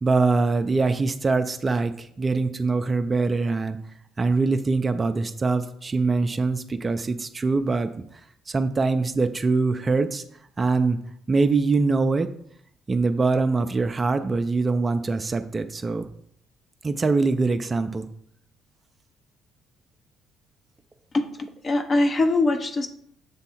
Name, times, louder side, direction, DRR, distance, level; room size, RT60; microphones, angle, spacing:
voice 1, 0.0-3.8 4.2-7.9 8.5-10.2 10.6-11.0 11.3-12.3 12.9-16.1 16.8-18.1, right 3 dB, 30° right, 8 dB, 0.5 m, -23 dB
voice 2, 21.1-22.9, left 2 dB, 35° left, 7 dB, 0.8 m, -23 dB
7.0 x 3.5 x 4.3 m, 0.68 s
hypercardioid pair, 50°, 0 cm